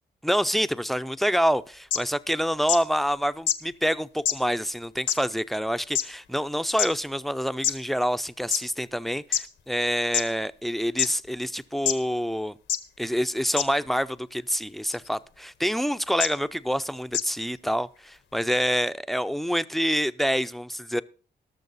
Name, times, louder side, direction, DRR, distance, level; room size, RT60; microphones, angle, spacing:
voice 1, 0.2-12.5 13.0-21.0, equal, ahead, 0.5 m, -27 dB
sound 1, 1.9-2.0 2.7-2.8 3.5-3.6 4.2-4.3 5.1-5.2 5.9-6.0 6.8-6.9 7.6-7.7 8.5-8.6 9.3-9.4 10.1-10.2 11.0-11.1 11.8-11.9 12.7-12.8 13.6-13.7 14.9-15.1 16.2-16.3 17.1-17.2, left 9 dB, 85° left, 1.0 m, -24 dB
19.0 x 6.5 x 4.1 m
cardioid pair, 60°, 19 cm